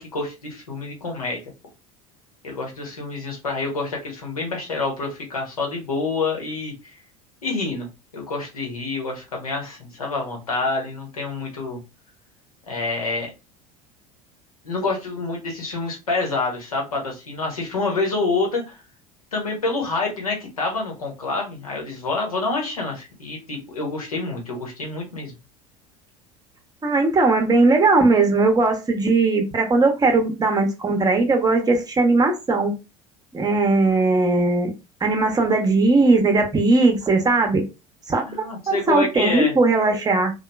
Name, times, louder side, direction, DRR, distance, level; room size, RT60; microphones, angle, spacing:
voice 1, 0.0-1.4 2.4-6.9 7.4-7.9 8.1-11.8 12.7-13.3 14.6-18.8 19.3-25.3 38.3-39.5, left 3 dB, 85° left, 1.0 m, -27 dB
voice 2, 26.8-32.7 33.3-34.7 35.0-37.7 38.1-38.2 38.7-40.3, right 3 dB, 20° right, 0.8 m, -18 dB
2.9 x 2.3 x 2.2 m
figure-of-eight pair, 70°, 18 cm